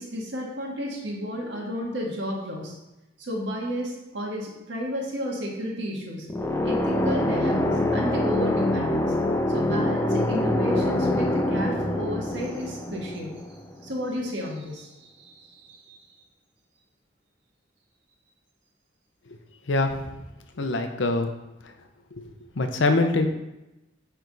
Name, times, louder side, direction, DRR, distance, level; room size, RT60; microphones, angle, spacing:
voice 1, 0.0-2.7 3.2-6.3 6.6-9.1 9.5-13.3 13.8-16.0, equal, 70° right, -2 dB, 1.6 m, -32 dB
sound 1, 6.3-14.0, left 1 dB, 15° left, 0.4 m, -25 dB
voice 2, 19.7-20.1 20.6-21.3 21.6-21.7 22.1-23.3, left 2 dB, 75° left, 6 dB, 0.7 m, -24 dB
9.1 x 3.5 x 3.9 m, 0.98 s
head